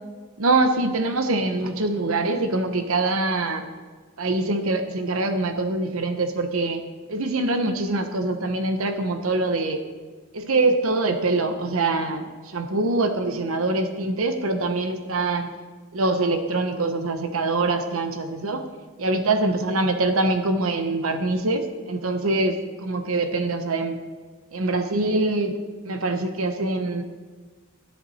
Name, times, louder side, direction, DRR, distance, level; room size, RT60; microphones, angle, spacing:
voice 1, 0.4-3.7 4.2-6.8 7.1-9.8 10.3-15.5 15.9-18.6 19.0-24.0 24.5-25.5 25.8-27.0, right 2 dB, 75° right, 7 dB, 1.0 m, -24 dB
13.0 x 10.0 x 4.2 m, 1.4 s
head